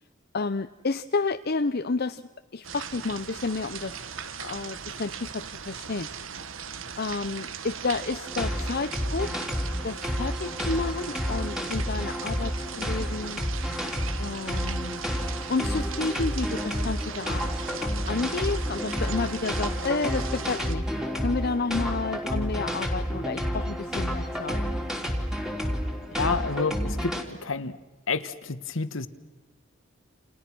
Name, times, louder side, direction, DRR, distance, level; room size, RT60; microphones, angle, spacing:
voice 1, 0.3-2.2 2.5-4.0 4.4-6.1 7.0-9.3 9.8-13.4 14.2-15.0 15.5-17.5 17.8-20.8 21.2-24.6, left 3 dB, 50° left, 9 dB, 0.7 m, -30 dB
sound 1, 2.6-20.7, right 7 dB, 70° right, 1.3 m, -39 dB
sound 2, 8.2-27.2, equal, 5° right, 3.4 m, -30 dB
voice 2, 26.2-27.7 28.1-29.1, left 4 dB, 70° left, 12 dB, 1.5 m, -29 dB
29.5 x 29.5 x 6.2 m, 1.3 s
head